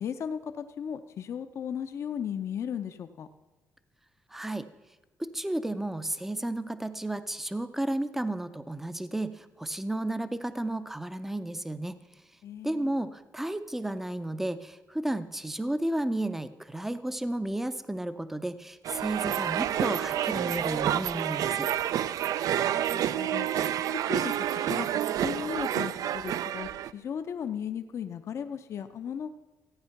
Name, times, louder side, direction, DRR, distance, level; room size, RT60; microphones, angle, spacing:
voice 1, 0.0-3.3 12.4-12.9 22.6-23.5 24.0-29.3, left 8 dB, 50° left, 9 dB, 0.6 m, -36 dB
voice 2, 4.3-4.7 5.2-12.0 12.6-21.7, right 1 dB, 5° right, 12 dB, 0.5 m, -32 dB
sound 1, 18.8-26.9, right 10 dB, 70° right, 0.4 m, -29 dB
14.5 x 8.9 x 5.8 m, 1.1 s
cardioid pair, 160°, 6 cm